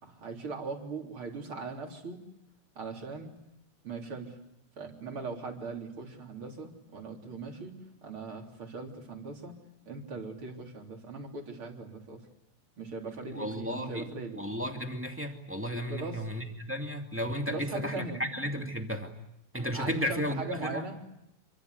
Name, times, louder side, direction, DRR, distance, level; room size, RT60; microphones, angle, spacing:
voice 1, 0.0-2.2 2.8-3.3 3.8-4.4 4.8-9.6 9.9-12.2 12.8-14.5 15.9-16.3 17.5-18.2 19.7-21.1, right 3 dB, 35° right, 2 dB, 3.9 m, -40 dB
voice 2, 13.3-14.1 14.3-19.1 19.5-20.8, equal, 10° right, 3 dB, 0.8 m, -34 dB
27.5 x 25.0 x 8.1 m, 0.83 s
omnidirectional pair, 4.7 m